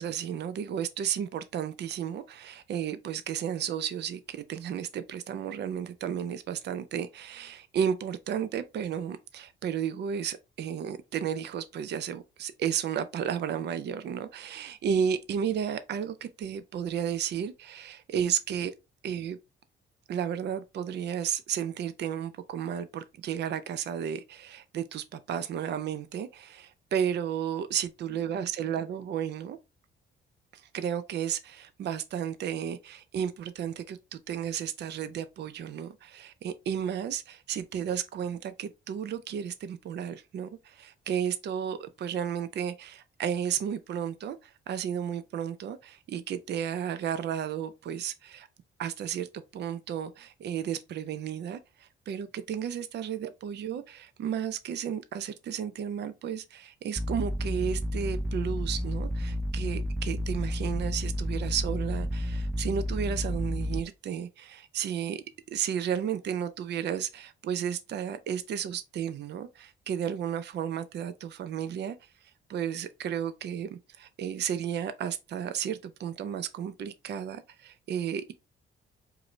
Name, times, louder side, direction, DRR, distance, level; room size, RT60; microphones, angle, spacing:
voice 1, 0.0-18.7 19.0-19.4 20.1-29.6 30.5-48.5 48.8-65.2 65.5-72.0 72.5-78.3, right 8 dB, 60° right, 0.5 m, -33 dB
sound 1, 57.0-63.8, equal, ahead, 0.3 m, -31 dB
4.7 x 2.6 x 3.1 m
cardioid pair, 90°, 20 cm